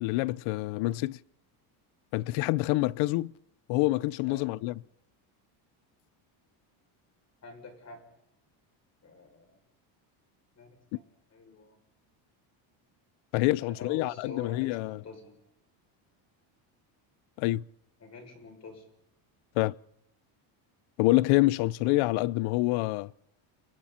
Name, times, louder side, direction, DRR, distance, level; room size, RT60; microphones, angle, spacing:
voice 1, 0.0-1.2 2.1-3.3 3.7-4.7 13.3-15.0 17.4-17.6 19.6-19.7 21.0-23.1, left 19 dB, 70° left, 0.7 m, -26 dB
voice 2, 7.4-8.0 9.0-9.6 10.6-11.0 11.3-11.8 13.6-15.4 18.0-18.8, left 4 dB, 30° left, 7.0 m, -46 dB
29.5 x 22.5 x 4.4 m
cardioid pair, 140°, 50 cm